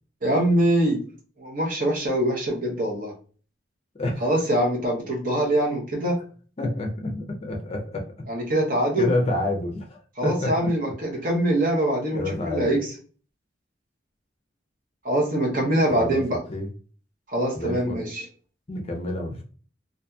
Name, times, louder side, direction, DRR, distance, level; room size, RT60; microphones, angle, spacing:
voice 1, 0.2-1.0 1.4-3.1 4.2-6.2 8.3-9.1 10.2-12.8 15.0-16.4 17.3-18.2, right 1 dB, 50° right, -1 dB, 0.8 m, -23 dB
voice 2, 4.0-4.3 6.6-8.1 9.0-10.7 12.1-12.7 15.9-16.2 16.5-16.7 17.5-18.0 18.7-19.4, left 1 dB, 35° left, 2 dB, 0.5 m, -28 dB
2.7 x 2.5 x 2.2 m, 0.40 s
head